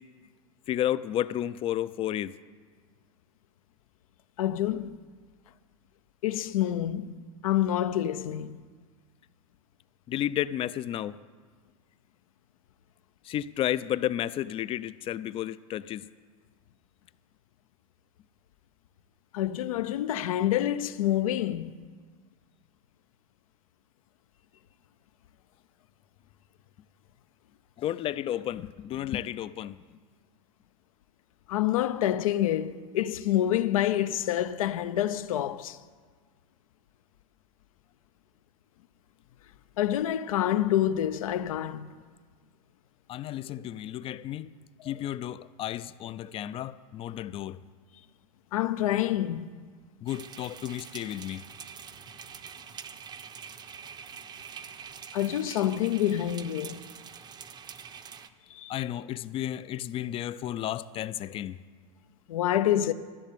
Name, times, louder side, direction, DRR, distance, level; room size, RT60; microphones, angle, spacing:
voice 1, 0.7-2.3 10.1-11.2 13.3-16.1 27.8-29.8 43.1-44.5 44.8-47.6 50.0-51.4 58.7-61.6, left 12 dB, 30° left, 0.4 m, -32 dB
voice 2, 4.4-5.0 6.2-8.6 19.3-21.7 31.5-35.8 39.8-41.9 48.5-49.5 55.1-56.8 58.5-58.8 62.3-62.9, left 12 dB, 75° left, 0.6 m, -27 dB
sound 1, 50.1-58.3, right 7 dB, 25° right, 0.7 m, -45 dB
13.5 x 7.4 x 8.5 m
hypercardioid pair, 110°, 18 cm